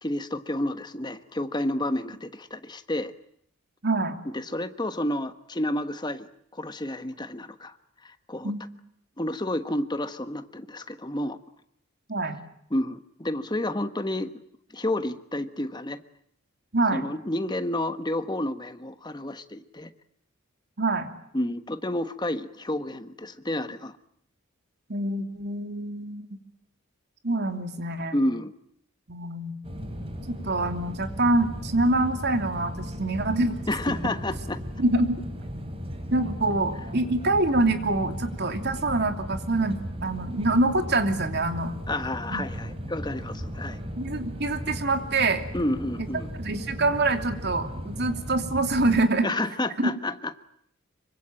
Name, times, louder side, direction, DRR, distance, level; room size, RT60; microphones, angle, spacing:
voice 1, 0.0-3.1 4.2-6.3 6.5-7.8 8.0-8.5 9.2-11.4 12.7-14.3 14.7-16.0 16.9-19.9 21.3-24.0 28.1-28.5 33.7-34.6 41.9-43.8 45.5-46.3 49.2-50.3, left 1 dB, 20° left, 10 dB, 1.3 m, -30 dB
voice 2, 3.8-4.2 8.4-8.6 12.1-12.4 16.7-17.0 20.8-21.1 24.9-26.3 27.2-28.2 29.1-29.5 30.3-33.6 34.0-34.1 34.8-35.2 36.1-41.7 42.3-42.4 44.0-45.4 46.4-49.3 49.8-49.9, right 2 dB, 50° right, 7 dB, 2.9 m, -25 dB
sound 1, 29.6-49.0, equal, 25° right, 3.5 m, -36 dB
25.5 x 24.5 x 8.9 m, 0.70 s
head